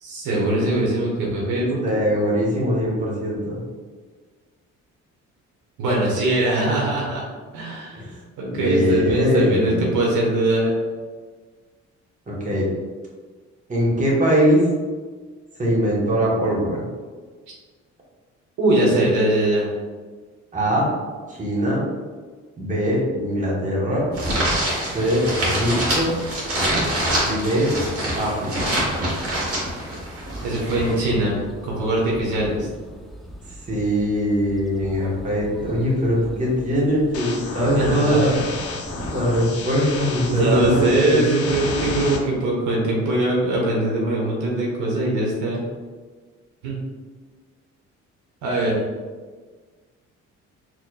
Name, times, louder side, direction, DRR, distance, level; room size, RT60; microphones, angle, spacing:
voice 1, 0.0-1.8 5.8-7.2 7.5-8.0 8.4-10.7 18.6-19.7 30.4-31.4 31.6-32.7 37.7-38.4 40.2-45.6 46.6-46.8 48.4-48.9, right 1 dB, 85° right, -3 dB, 1.1 m, -21 dB
voice 2, 1.8-3.6 8.0-8.1 8.5-9.9 12.3-12.7 13.7-14.6 15.6-16.8 20.5-20.9 21.3-21.8 22.6-24.1 24.9-26.1 27.2-27.8 28.1-28.7 33.7-38.4 39.1-41.2, equal, 25° right, -4 dB, 1.2 m, -21 dB
sound 1, 24.1-30.9, right 1 dB, 50° right, 1.5 m, -25 dB
sound 2, 28.5-41.3, equal, ahead, 0.4 m, -40 dB
sound 3, 37.1-42.2, left 3 dB, 50° left, 0.6 m, -31 dB
4.3 x 3.1 x 2.2 m, 1.4 s
cardioid pair, 90°, 30 cm